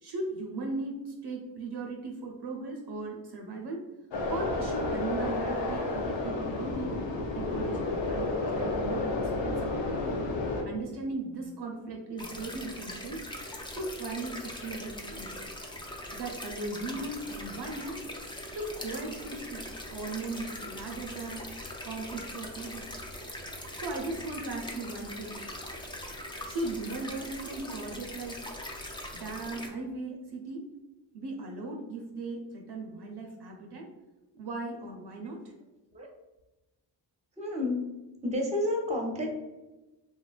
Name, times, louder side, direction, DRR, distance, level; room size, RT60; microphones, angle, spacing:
voice 1, 0.0-3.9 4.3-7.1 7.3-10.0 10.6-13.2 13.8-15.5 16.1-18.0 18.5-21.5 21.8-23.0 23.7-25.4 26.5-28.4 29.1-30.7 31.1-33.9 34.4-35.5, right 2 dB, 55° right, 1 dB, 0.6 m, -38 dB
sound 1, 4.1-10.6, left 2 dB, 65° left, 0.7 m, -31 dB
sound 2, 12.2-29.7, left 1 dB, 10° left, 0.4 m, -41 dB
voice 2, 37.4-37.8 38.2-39.3, left 1 dB, 15° right, 0 dB, 0.7 m, -30 dB
2.9 x 2.2 x 2.3 m, 1.1 s
cardioid pair, 55°, 48 cm